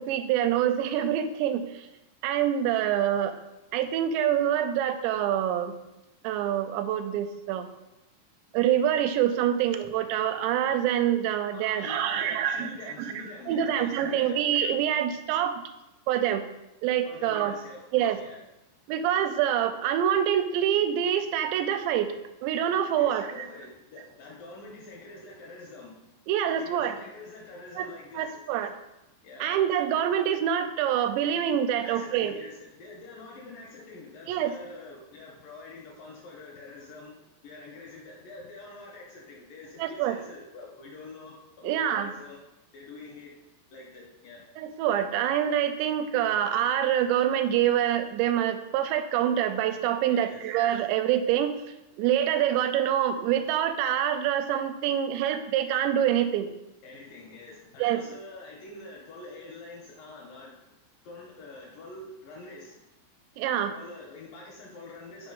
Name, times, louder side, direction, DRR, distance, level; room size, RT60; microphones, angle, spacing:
voice 1, 0.0-1.9 2.2-3.4 3.7-5.8 6.2-7.7 8.5-12.7 13.5-15.6 16.1-16.4 16.8-17.5 17.9-18.2 18.9-22.1 22.4-23.3 26.3-26.9 27.8-27.9 28.1-28.7 29.4-32.3 34.3-34.5 39.8-40.2 41.6-42.1 44.6-51.5 52.0-56.5 57.8-58.0 63.4-63.7, right 10 dB, 90° right, 8 dB, 2.8 m, -26 dB
voice 2, 11.5-14.4 17.1-18.4 23.0-26.0 26.5-28.4 29.2-29.6 31.8-37.2 37.4-42.4 42.7-43.3 43.7-44.5 50.1-50.4 56.8-60.6 61.0-62.9 63.7-65.3, left 3 dB, 75° left, -2 dB, 2.1 m, -45 dB
6.2 x 4.9 x 5.4 m, 0.94 s
omnidirectional pair, 5.0 m